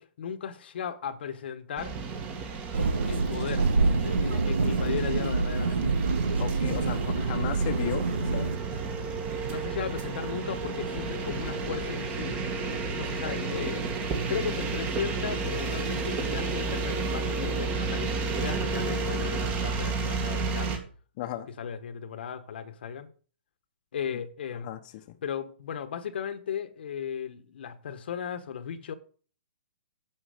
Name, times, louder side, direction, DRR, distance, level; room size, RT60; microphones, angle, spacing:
voice 1, 0.0-1.9 3.1-5.9 9.5-12.4 12.9-20.7 21.6-23.1 23.9-24.7 25.2-28.9, left 8 dB, 65° left, 1.3 m, -36 dB
sound 1, 1.8-20.8, right 4 dB, 25° right, 2.1 m, -32 dB
sound 2, 2.7-8.6, right 3 dB, 85° right, 1.7 m, -26 dB
voice 2, 6.4-8.1 8.3-8.5 13.5-13.9 21.2-21.5 24.6-24.8, left 11 dB, 40° left, 1.1 m, -35 dB
10.5 x 7.1 x 5.1 m
hypercardioid pair, 140°, 6 cm